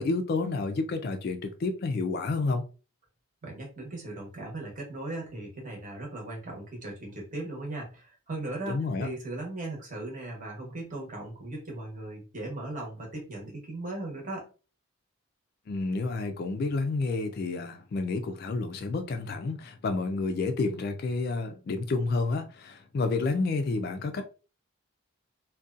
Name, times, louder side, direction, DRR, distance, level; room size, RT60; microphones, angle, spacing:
voice 1, 0.0-2.6 8.7-9.1 15.7-24.3, left 3 dB, 45° left, 0.3 m, -30 dB
voice 2, 3.4-14.5, right 2 dB, 35° right, 0.9 m, -38 dB
2.6 x 2.2 x 2.4 m
head